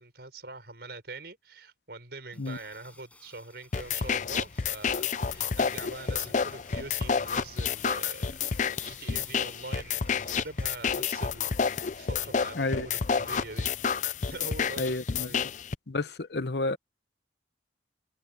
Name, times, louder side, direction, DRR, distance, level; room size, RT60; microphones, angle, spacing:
voice 1, 0.0-13.8 14.2-15.5, right 2 dB, 65° right, 5.8 m, -44 dB
sound 1, 2.3-10.8, left 2 dB, 10° left, 7.7 m, -58 dB
sound 2, 3.7-15.7, left 6 dB, 45° left, 0.5 m, -30 dB
voice 2, 12.5-12.9 14.8-15.4 15.9-16.8, left 2 dB, 65° left, 0.9 m, -31 dB
open air
head